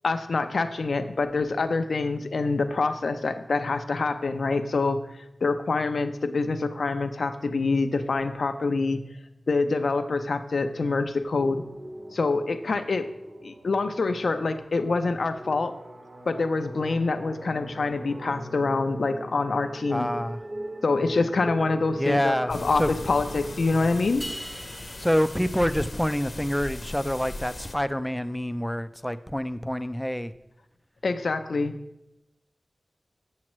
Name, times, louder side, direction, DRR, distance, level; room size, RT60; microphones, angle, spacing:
voice 1, 0.0-5.0 5.4-9.0 9.5-11.6 12.1-13.1 13.4-15.7 16.3-20.1 20.8-24.3 31.0-31.7, left 3 dB, 80° left, 8 dB, 0.5 m, -26 dB
sound 1, 11.3-24.0, right 1 dB, 55° right, 0.7 m, -41 dB
voice 2, 19.9-20.4 22.0-22.9 25.0-30.3, equal, 5° left, 11 dB, 0.4 m, -27 dB
sound 2, 22.5-27.7, left 2 dB, 55° left, 0.8 m, -38 dB
sound 3, 24.2-26.5, equal, 25° right, 1.1 m, -42 dB
7.5 x 7.4 x 3.1 m, 0.90 s
wide cardioid pair, 65°, 0 cm